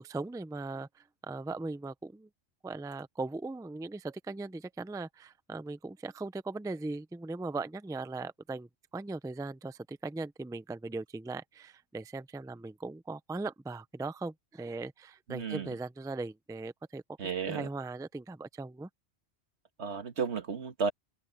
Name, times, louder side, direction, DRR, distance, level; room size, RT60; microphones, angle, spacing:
voice 1, 0.0-2.3 2.6-8.7 8.9-17.0 17.4-18.9, right 3 dB, 5° right, 0.4 m, -39 dB
voice 2, 15.3-15.7 17.2-17.7 19.8-20.9, right 5 dB, 85° right, 1.8 m, -33 dB
omnidirectional pair, 1.1 m